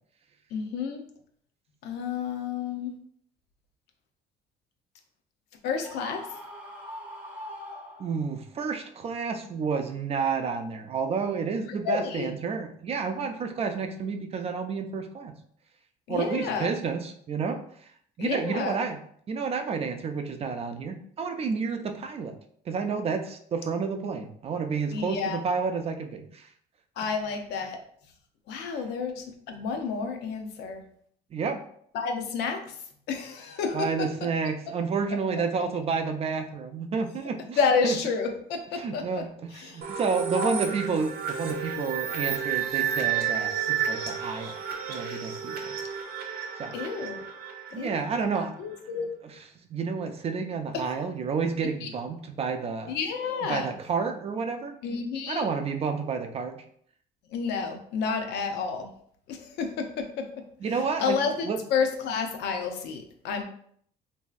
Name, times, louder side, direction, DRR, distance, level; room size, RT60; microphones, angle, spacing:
voice 1, 0.5-1.0 1.8-2.9 5.6-6.3 11.8-12.3 16.1-16.7 18.2-18.8 24.9-25.4 27.0-27.8 28.5-30.8 31.9-32.8 33.1-34.1 37.6-39.3 39.5-39.9 40.3-40.6 46.7-47.2 47.8-48.0 48.3-49.1 50.7-50.9 51.6-51.9 52.9-53.7 54.8-55.5 57.3-58.9 59.3-60.3 61.0-63.4, left 5 dB, 80° left, 4 dB, 0.5 m, -30 dB
Screaming, 5.8-8.5, equal, 10° right, 0.7 m, -42 dB
voice 2, 8.0-15.3 16.1-17.6 18.2-19.0 19.3-22.3 22.7-26.5 31.3-31.6 33.7-37.6 37.8-37.9 38.8-44.5 44.9-45.8 46.6-46.7 47.7-48.5 49.7-53.0 53.5-54.8 55.3-56.6 60.6-61.2 61.5-61.6, right 5 dB, 35° right, 6 dB, 0.4 m, -30 dB
sound 1, 39.8-48.4, right 8 dB, 70° right, 0.7 m, -31 dB
3.0 x 2.6 x 2.4 m, 0.62 s
cardioid pair, 110°, 17 cm